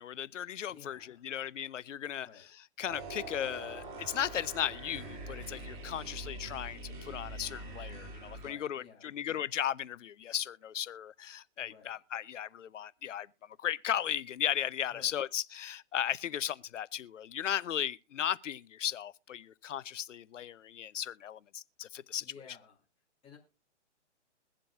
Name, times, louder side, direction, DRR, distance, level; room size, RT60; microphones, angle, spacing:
voice 1, 0.0-2.3 2.8-13.3 13.6-22.2, left 10 dB, 85° left, 0.6 m, -36 dB
voice 2, 0.7-1.4 2.2-2.5 8.3-9.1 11.6-11.9 14.9-15.2 22.2-22.8 23.2-23.4, left 7 dB, 15° left, 2.5 m, -55 dB
sound 1, 2.9-8.5, right 2 dB, 45° right, 2.5 m, -44 dB
22.5 x 7.6 x 2.3 m
hypercardioid pair, 140°, 36 cm